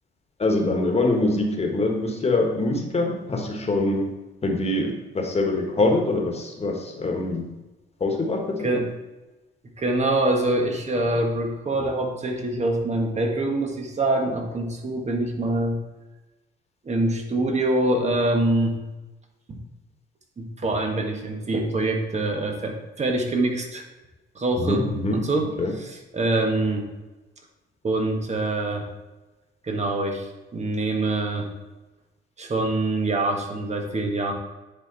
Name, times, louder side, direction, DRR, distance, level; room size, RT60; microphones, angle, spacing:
voice 1, 0.4-4.1 4.4-7.5 8.0-8.7 24.6-25.2 25.6-25.7, left 2 dB, 30° left, 2 dB, 1.6 m, -24 dB
voice 2, 9.8-15.8 16.8-18.8 19.5-19.6 20.4-23.8 24.3-25.5 25.8-26.9 27.8-28.9 29.6-31.5 32.4-34.3, right 2 dB, 35° right, 3 dB, 1.5 m, -25 dB
9.7 x 4.4 x 4.1 m, 1.1 s
cardioid pair, 90°, 20 cm